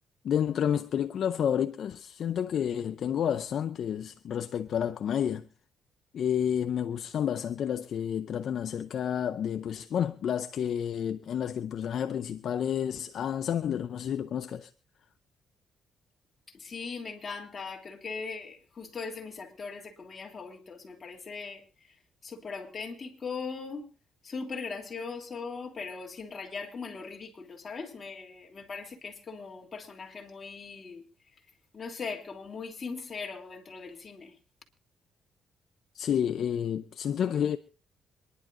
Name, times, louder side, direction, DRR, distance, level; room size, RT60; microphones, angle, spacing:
voice 1, 0.2-5.5 6.1-14.7 35.9-37.6, left 9 dB, 65° left, 0.6 m, -30 dB
voice 2, 16.5-21.6 22.2-23.9 24.2-31.0 31.7-34.3, left 4 dB, 40° left, 3.1 m, -39 dB
26.5 x 11.0 x 2.6 m
cardioid pair, 90°, 0 cm